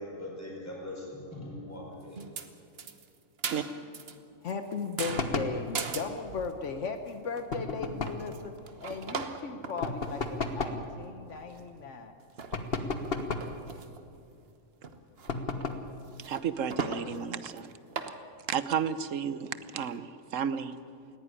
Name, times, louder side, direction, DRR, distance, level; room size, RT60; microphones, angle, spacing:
voice 1, 0.0-2.2, left 1 dB, 10° left, -3 dB, 4.6 m, -41 dB
sound 1, 2.1-2.5 2.8-4.2 4.5-6.6 7.1-7.2 7.4-7.7 8.1-10.5 11.0-11.1 11.4-11.8 12.3-12.6 13.0-14.0 14.3-14.4 14.8-15.3 15.6-15.7 16.0-17.1 17.5-17.6 17.9-18.2, right 5 dB, 55° right, 1.3 m, -39 dB
voice 2, 4.4-8.5 8.8-12.2, left 5 dB, 70° left, 7 dB, 1.3 m, -37 dB
sound 2, 5.2-5.6 7.5-8.3 9.8-10.8 12.5-13.6 15.3-15.9, left 3 dB, 50° left, 1.4 m, -33 dB
voice 3, 16.2-17.7 18.5-20.8, right 7 dB, 80° right, 13 dB, 1.3 m, -32 dB
19.0 x 16.5 x 10.0 m, 2.5 s
omnidirectional pair, 1.3 m